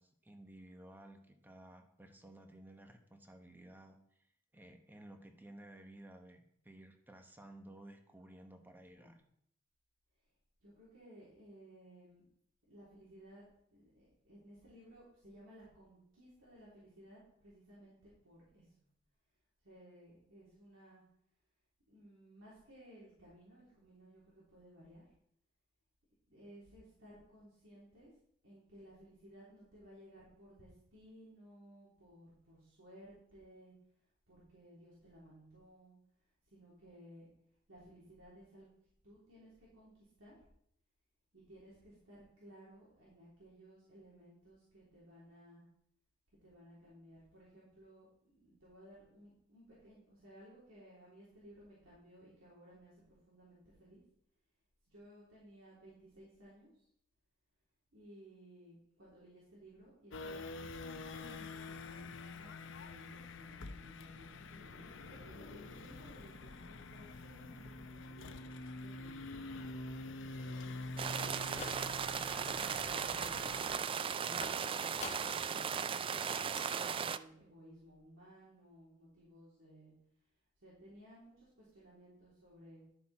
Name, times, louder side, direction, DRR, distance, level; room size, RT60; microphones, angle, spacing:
voice 1, 0.0-4.0 4.5-9.2 70.3-70.5, right 1 dB, 10° right, 5 dB, 1.1 m, -55 dB
voice 2, 8.9-9.2 10.6-12.3 12.7-13.4 13.7-18.9 19.6-21.0 21.9-25.0 26.3-28.1 28.4-33.7 34.3-36.0 36.5-37.3 37.7-38.7 39.0-40.4 41.3-45.7 46.4-54.0 54.9-56.8 57.9-60.4 61.1-69.4 70.3-71.5 72.2-73.4 73.9-79.9 80.6-82.8, equal, 85° right, -8 dB, 3.5 m, -58 dB
sound 1, 60.1-73.8, left 2 dB, 70° left, 0.7 m, -46 dB
sound 2, 71.0-77.2, right 7 dB, 25° right, 0.3 m, -37 dB
sound 3, 71.2-72.2 72.6-73.1 74.4-75.5 75.9-76.0 76.2-76.3 76.6-76.7, left 4 dB, 35° left, 1.0 m, -49 dB
11.5 x 7.0 x 4.3 m, 0.71 s
head